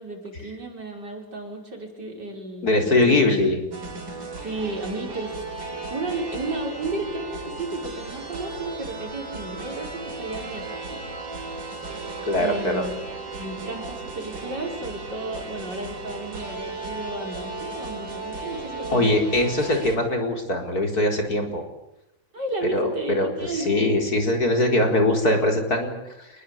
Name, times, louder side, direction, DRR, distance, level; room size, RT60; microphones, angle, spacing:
voice 1, 0.0-3.5 4.4-5.3 5.9-11.0 12.4-12.9 13.3-19.2 22.3-23.8, right 2 dB, 60° right, 2 dB, 6.3 m, -33 dB
voice 2, 2.6-3.6 12.2-12.8 18.9-21.6 22.7-26.3, left 1 dB, 50° left, 3 dB, 4.8 m, -22 dB
sound 1, 3.7-20.0, right 3 dB, 90° right, 5.2 m, -35 dB
26.5 x 21.0 x 8.8 m, 0.85 s
omnidirectional pair, 2.0 m